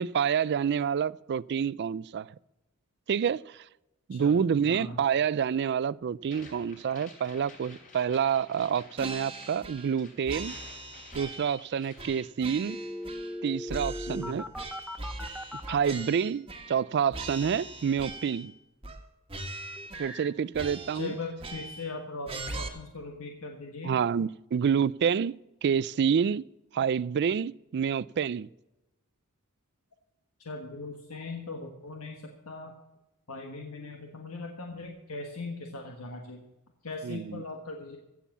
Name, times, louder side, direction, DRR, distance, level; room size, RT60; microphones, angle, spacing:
voice 1, 0.0-2.3 3.1-3.6 4.1-10.6 11.1-12.8 13.4-14.4 15.7-18.5 20.0-21.1 23.8-25.3 25.6-26.4 26.7-28.5 37.0-37.4, right 7 dB, 50° right, 0.3 m, -28 dB
voice 2, 4.6-5.0 14.1-14.4 20.9-24.0 30.4-32.7 33.3-36.4 36.8-38.0, left 3 dB, 70° left, 1.4 m, -39 dB
sound 1, 6.2-12.8 13.0-14.0, left 3 dB, 35° left, 3.5 m, -53 dB
sound 2, 9.0-10.0 10.3-11.6 12.0-13.4 13.7-16.9 17.1-18.5 18.8-19.0 19.3-20.3 20.5-21.9 22.3-22.7, right 2 dB, 25° right, 1.5 m, -40 dB
sound 3, 12.7-15.8 19.5-20.3, left 1 dB, 5° right, 0.7 m, -39 dB
15.5 x 7.4 x 7.1 m
head